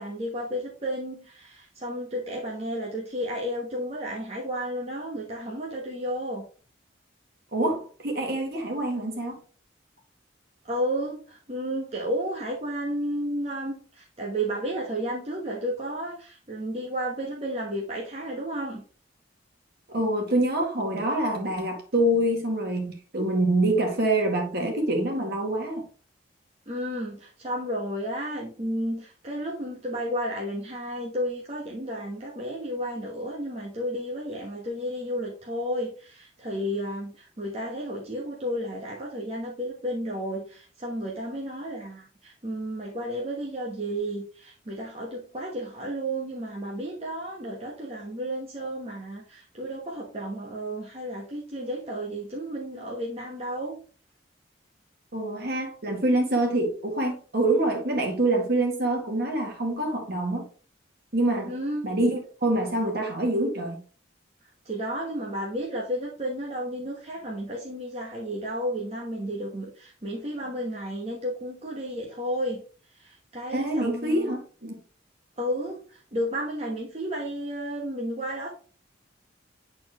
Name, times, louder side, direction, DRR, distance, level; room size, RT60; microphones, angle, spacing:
voice 1, 0.0-6.4 10.6-18.8 26.7-53.8 61.5-61.9 64.6-72.6 72.9-74.3 75.4-78.5, equal, 35° right, 1.2 m, -32 dB
voice 2, 7.5-9.4 19.9-22.9 23.1-25.8 55.1-60.4 61.1-61.5 61.8-63.8 73.5-74.7, right 1 dB, 55° right, 2.0 m, -25 dB
8.6 x 4.3 x 3.0 m
head